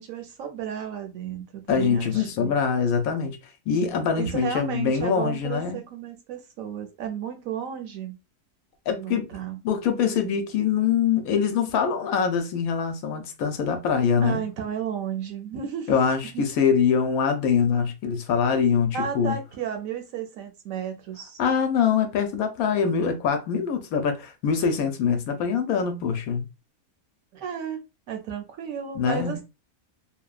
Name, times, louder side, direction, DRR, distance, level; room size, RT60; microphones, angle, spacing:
voice 1, 0.0-2.5 4.2-8.2 8.9-9.6 14.2-16.0 16.3-16.5 18.9-21.4 27.3-27.8 28.1-29.4, right 8 dB, 70° right, 1.0 m, -33 dB
voice 2, 1.7-3.4 3.7-5.8 8.9-9.3 9.6-14.4 15.9-19.4 21.4-26.4 29.0-29.4, left 6 dB, 75° left, 1.0 m, -24 dB
2.8 x 2.1 x 2.3 m
omnidirectional pair, 1.6 m